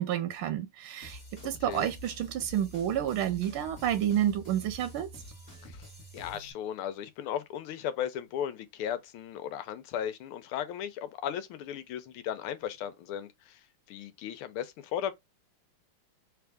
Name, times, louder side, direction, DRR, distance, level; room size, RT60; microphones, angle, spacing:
voice 1, 0.0-5.1, right 11 dB, 80° right, 1.5 m, -30 dB
sound 1, 1.0-6.5, equal, 20° left, 1.4 m, -48 dB
voice 2, 6.1-13.6 13.9-15.1, left 9 dB, 85° left, 1.6 m, -36 dB
3.5 x 3.3 x 3.4 m
omnidirectional pair, 2.3 m